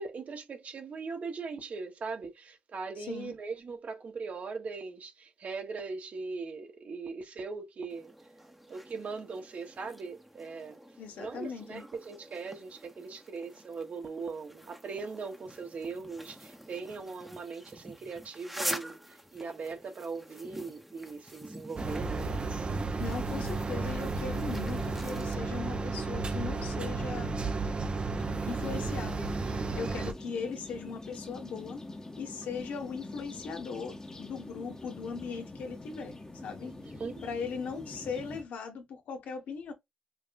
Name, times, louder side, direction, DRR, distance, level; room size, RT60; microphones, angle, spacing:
voice 1, 0.0-8.1 8.7-10.8 11.2-22.4 36.6-37.1, right 4 dB, 60° right, 1.1 m, -40 dB
voice 2, 3.0-3.3 11.0-11.8 23.0-27.3 28.5-29.4 29.8-31.8 32.2-36.7 37.2-39.7, left 5 dB, 90° left, 1.1 m, -39 dB
sound 1, 7.9-25.3, equal, 5° right, 0.9 m, -46 dB
sound 2, 21.8-30.1, right 3 dB, 40° right, 0.7 m, -33 dB
sound 3, 28.2-38.4, left 2 dB, 20° left, 1.1 m, -45 dB
5.1 x 2.3 x 2.5 m
cardioid pair, 80°, 3 cm